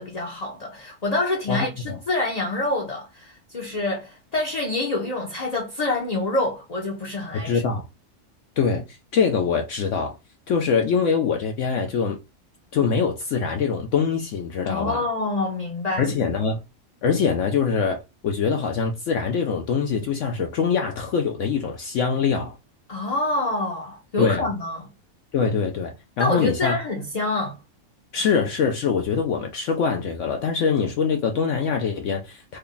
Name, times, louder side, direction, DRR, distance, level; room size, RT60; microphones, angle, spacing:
voice 1, 0.0-7.6 14.7-16.1 22.9-24.8 26.2-27.6, left 2 dB, 35° left, 0.7 m, -26 dB
voice 2, 1.5-2.0 7.4-7.8 8.6-10.2 10.5-12.2 12.7-15.0 16.0-16.6 17.0-22.6 24.2-24.5 25.3-26.8 28.1-32.6, left 6 dB, 65° left, 0.8 m, -23 dB
3.3 x 2.2 x 3.8 m
omnidirectional pair, 1.5 m